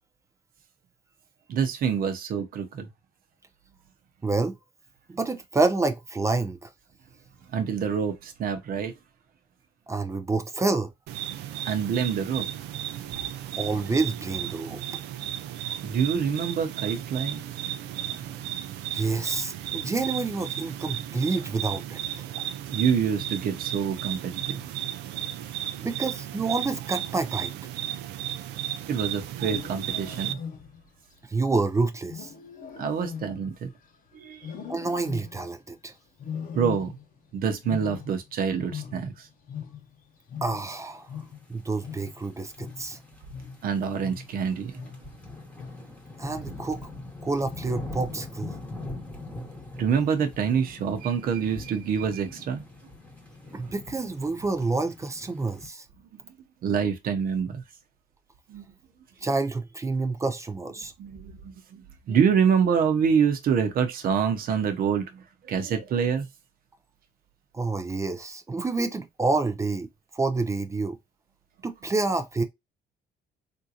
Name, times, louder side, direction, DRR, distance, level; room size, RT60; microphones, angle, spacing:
voice 1, 1.5-2.9 7.5-8.9 11.6-12.5 15.8-18.5 22.7-24.6 28.9-30.4 32.8-33.7 34.1-34.5 36.5-37.0 37.3-39.3 43.6-44.8 49.8-52.6 56.6-57.6 58.5-58.6 61.0-66.3, right 7 dB, 60° right, 0.9 m, -26 dB
voice 2, 4.2-4.6 5.1-6.7 9.9-10.9 13.6-14.8 18.9-22.3 25.8-27.5 31.3-32.3 34.7-35.9 40.4-41.1 41.5-43.0 46.2-46.8 47.2-48.5 53.5-55.8 59.2-60.9 67.5-69.9 70.1-71.0 71.6-72.4, right 3 dB, 15° right, 0.5 m, -28 dB
sound 1, 11.1-30.3, right 12 dB, 85° right, 0.5 m, -34 dB
Wild animals, 29.3-31.0 32.1-34.0 34.4-35.6 36.2-37.3 37.5-40.0 40.3-45.2 45.6-46.0 46.5-46.9 47.6-48.1, left 7 dB, 55° left, 0.8 m, -40 dB
sound 2, 41.4-55.7, left 2 dB, 10° left, 1.1 m, -42 dB
3.7 x 2.6 x 2.7 m
cardioid pair, 110°, 17 cm